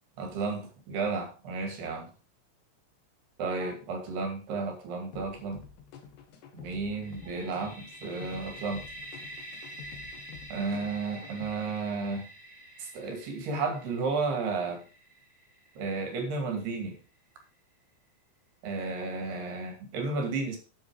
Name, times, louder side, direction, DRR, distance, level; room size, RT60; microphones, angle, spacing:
voice 1, 0.2-2.1 3.4-5.6 6.5-8.8 10.5-12.2 12.8-14.8 15.8-17.0 18.6-20.6, right 4 dB, 60° right, 4 dB, 4.1 m, -32 dB
sound 1, 5.1-11.5, left 7 dB, 65° left, 3.5 m, -49 dB
sound 2, 7.0-16.7, right 1 dB, 5° right, 2.8 m, -47 dB
9.4 x 9.0 x 5.0 m, 0.34 s
omnidirectional pair, 5.7 m